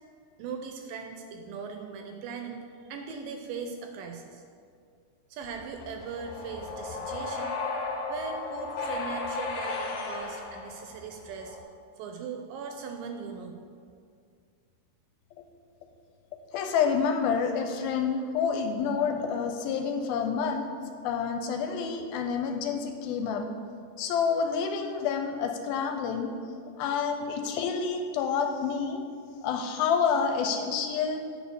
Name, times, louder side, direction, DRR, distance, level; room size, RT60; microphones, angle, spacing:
voice 1, 0.4-4.4 5.3-7.5 8.1-11.6 12.0-13.6, right 5 dB, 80° right, 4 dB, 2.1 m, -39 dB
sound 1, 5.4-11.6, left 3 dB, 70° left, 1.9 m, -35 dB
voice 2, 16.5-20.7 21.0-23.4 24.0-26.3 26.8-29.0 29.4-31.2, left 6 dB, 85° left, 5 dB, 2.4 m, -28 dB
9.1 x 4.8 x 6.9 m, 2.2 s
omnidirectional pair, 4.4 m